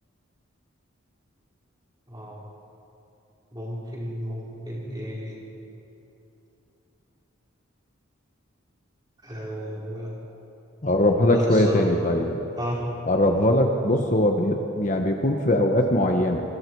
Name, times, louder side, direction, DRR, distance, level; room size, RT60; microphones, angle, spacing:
voice 1, 2.1-2.4 3.5-5.4 9.2-10.1 11.3-11.9 12.5-12.8, equal, 20° right, -5 dB, 4.8 m, -33 dB
voice 2, 10.8-12.4 13.1-16.4, left 1 dB, 35° left, 3 dB, 1.2 m, -21 dB
28.5 x 21.5 x 4.8 m, 2.9 s
head